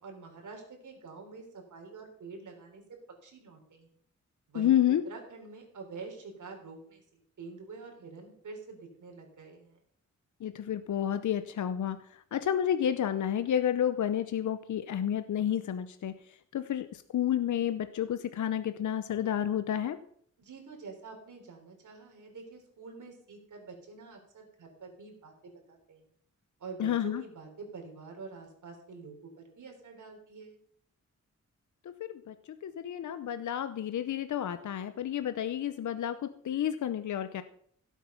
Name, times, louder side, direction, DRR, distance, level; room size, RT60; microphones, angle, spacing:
voice 1, 0.0-3.9 4.5-4.8 5.1-9.8 20.4-26.0 26.6-30.6, right 4 dB, 80° right, 2 dB, 3.9 m, -47 dB
voice 2, 4.6-5.0 10.4-20.0 26.8-27.2 31.8-32.3 32.6-37.4, left 10 dB, 75° left, 11 dB, 0.7 m, -30 dB
15.5 x 8.3 x 5.8 m, 0.63 s
wide cardioid pair, 180°, 30 cm